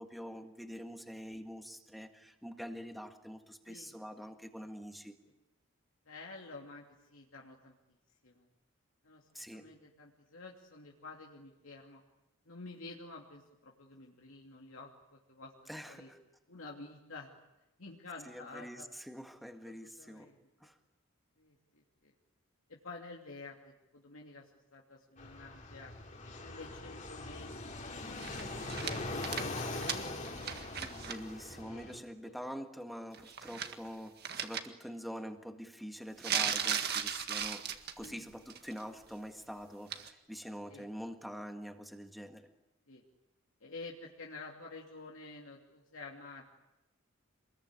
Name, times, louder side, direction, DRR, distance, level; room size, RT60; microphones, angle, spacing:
voice 1, 0.0-5.2 9.3-9.7 15.7-16.2 18.3-20.3 20.6-20.7 30.7-37.7 38.0-42.5, equal, ahead, 5 dB, 1.8 m, -45 dB
voice 2, 4.2-4.7 6.1-7.7 8.2-8.5 9.0-12.0 12.5-15.5 15.9-16.1 16.5-17.3 17.8-18.9 19.7-20.4 21.4-22.1 22.7-25.9 26.4-28.0 28.2-30.6 31.6-32.4 38.0-38.2 40.7-40.9 42.9-43.0 43.6-46.4, left 3 dB, 75° left, -1 dB, 2.8 m, -50 dB
Fixed-wing aircraft airplane, 25.2-32.0, left 2 dB, 35° left, 2.9 m, -42 dB
sound 1, 28.2-31.2 31.5-31.6 33.1-33.9 34.2-34.6 36.2-38.1 38.5-38.8 39.9-40.1, right 8 dB, 50° right, 1.8 m, -37 dB
27.5 x 21.5 x 9.8 m, 0.94 s
head